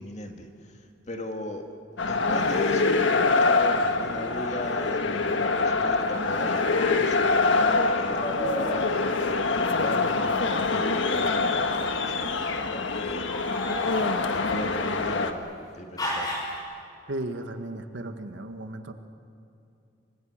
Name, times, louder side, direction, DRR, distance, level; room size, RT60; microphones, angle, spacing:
voice 1, 0.0-1.7 2.0-13.3 13.8-16.5, left 1 dB, 35° left, 4 dB, 2.1 m, -37 dB
sound 1, 2.0-15.3, left 3 dB, 75° left, 1.4 m, -25 dB
sound 2, 8.2-8.8 10.3-11.5 12.2-12.7 13.3-15.4 16.0-16.6, equal, 20° left, 5.9 m, -34 dB
voice 2, 17.1-18.9, right 1 dB, 75° right, 7 dB, 1.7 m, -35 dB
27.5 x 25.0 x 6.6 m, 2.6 s
head